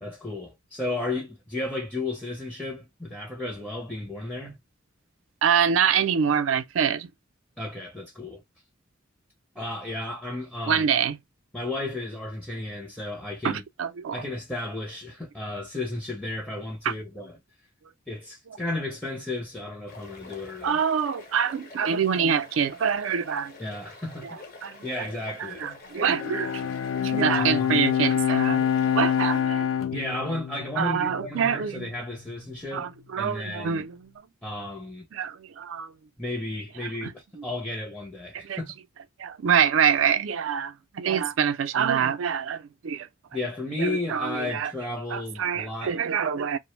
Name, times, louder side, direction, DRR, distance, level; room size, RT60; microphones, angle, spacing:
voice 1, 0.0-4.6 7.6-8.4 9.6-10.8 11.5-13.6 14.1-17.3 18.1-20.8 23.6-24.4 24.8-25.6 27.3-27.8 29.9-32.9 33.2-33.8 34.4-35.0 36.2-38.7 43.3-46.0, left 2 dB, 5° left, 0.5 m, -33 dB
voice 2, 5.4-7.1 10.7-11.2 13.4-14.2 20.6-23.6 24.2-24.4 24.6-24.8 25.4-26.7 27.0-28.7 28.9-29.7 30.8-31.9 32.7-34.1 35.1-35.9 37.0-37.1 38.3-38.6 39.2-43.1 43.8-44.7 45.1-46.6, right 7 dB, 80° right, 0.4 m, -25 dB
sound 1, 19.9-29.4, left 3 dB, 50° left, 0.9 m, -46 dB
Bowed string instrument, 26.1-31.6, left 9 dB, 90° left, 0.4 m, -26 dB
2.5 x 2.0 x 3.0 m
head